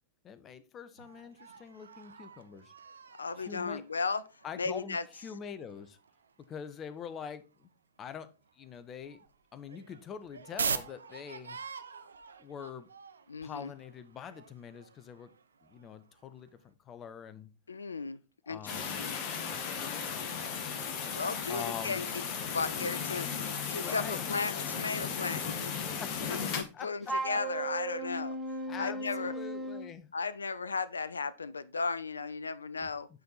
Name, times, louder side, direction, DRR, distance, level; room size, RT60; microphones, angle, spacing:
voice 1, 0.2-2.7 3.4-3.8 4.4-6.0 6.5-7.7 8.0-8.3 8.5-9.2 9.5-11.6 12.4-12.9 13.4-15.3 15.6-17.5 18.5-20.6 21.5-22.0 23.1-23.4 23.7-24.2 26.0-27.1 28.7-30.1 32.8-32.9, left 7 dB, 25° left, 0.8 m, -45 dB
sound 1, 1.0-7.7 8.0-8.1 8.4-16.6, right 6 dB, 70° right, 0.5 m, -44 dB
voice 2, 3.2-4.2 4.6-5.0 13.3-13.7 17.7-18.2 18.5-19.2 21.1-22.2 22.5-26.0 26.3-28.4 28.8-29.3 30.1-33.1, left 4 dB, 75° left, 0.3 m, -35 dB
sound 2, 18.7-26.6, left 6 dB, 40° left, 1.3 m, -36 dB
Wind instrument woodwind instrument, 27.0-29.9, right 2 dB, 10° right, 1.8 m, -36 dB
9.3 x 4.4 x 4.0 m
figure-of-eight pair, 90°, 0 cm